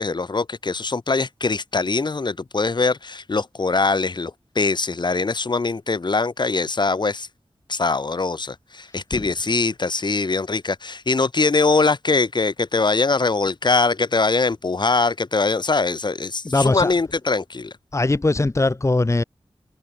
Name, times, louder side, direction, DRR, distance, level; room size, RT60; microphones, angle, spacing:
voice 1, 0.0-7.3 7.7-17.7, left 3 dB, 50° left, 1.7 m, -22 dB
voice 2, 16.4-16.9 17.9-19.2, left 2 dB, 30° left, 1.3 m, -20 dB
wide cardioid pair, 80°, 10 cm